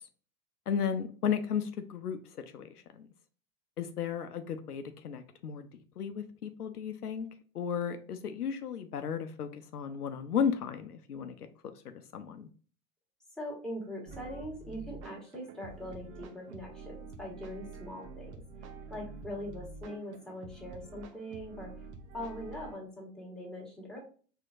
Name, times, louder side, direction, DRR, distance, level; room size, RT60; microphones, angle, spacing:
voice 1, 0.7-3.1 3.8-5.7 6.0-7.3 7.5-12.5, left 7 dB, 85° left, 9 dB, 0.5 m, -34 dB
voice 2, 13.4-18.3 18.9-21.7 22.1-24.0, equal, ahead, -4 dB, 1.4 m, -42 dB
sound 1, 14.1-22.8, right 3 dB, 50° right, 0.8 m, -47 dB
4.4 x 2.8 x 2.5 m, 0.41 s
figure-of-eight pair, 90°, 45 cm